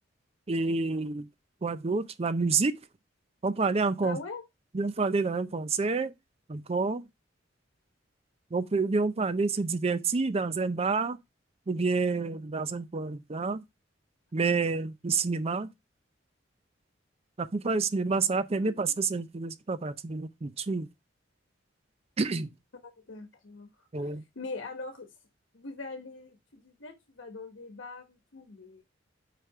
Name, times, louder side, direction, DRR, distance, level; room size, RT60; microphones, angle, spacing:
voice 1, 0.5-1.3 1.6-2.7 3.4-4.2 4.7-6.1 6.5-7.0 8.5-11.2 11.7-13.6 14.3-15.7 17.4-20.9 22.2-22.5 23.9-24.2, right 4 dB, 30° right, 0.5 m, -28 dB
voice 2, 4.0-4.4 18.6-18.7 22.8-25.1 25.5-28.8, left 3 dB, 85° left, 1.1 m, -42 dB
5.7 x 5.0 x 4.6 m
head